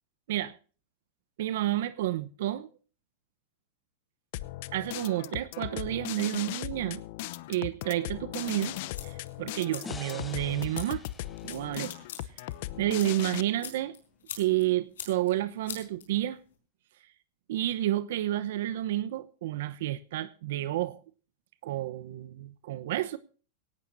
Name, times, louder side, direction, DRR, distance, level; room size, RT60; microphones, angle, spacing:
voice 1, 1.4-2.7 4.7-7.0 7.5-8.8 9.0-11.0 11.4-11.9 12.8-13.9 14.4-16.4 17.5-21.0 21.6-23.2, right 14 dB, 70° right, 0.9 m, -30 dB
sound 1, 4.3-13.4, left 16 dB, 60° left, 0.8 m, -38 dB
sound 2, 8.6-16.6, left 7 dB, 90° left, 4.9 m, -46 dB
sound 3, 9.8-13.0, left 5 dB, 15° left, 1.2 m, -48 dB
17.5 x 17.0 x 2.7 m
hypercardioid pair, 125°, 0 cm